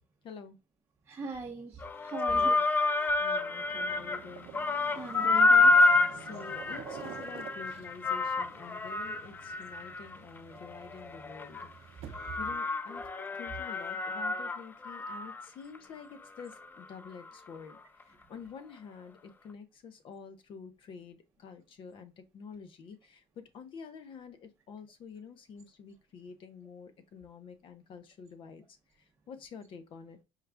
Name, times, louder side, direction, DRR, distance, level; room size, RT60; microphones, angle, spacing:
voice 1, 0.2-0.6 2.3-2.6 3.2-4.5 6.1-17.8 18.1-28.6 29.3-30.2, left 6 dB, 50° left, 0.8 m, -48 dB
voice 2, 1.1-2.6 3.0-3.2 4.9-5.9 12.0-12.4, right 4 dB, 20° right, 0.8 m, -41 dB
sound 1, 1.8-4.3 4.5-11.7 12.1-15.4 15.7-15.8 16.4-16.5, left 3 dB, 15° left, 0.3 m, -28 dB
sound 2, 3.4-12.5, right 10 dB, 60° right, 0.5 m, -50 dB
4.8 x 2.4 x 3.3 m
cardioid pair, 120°, 11 cm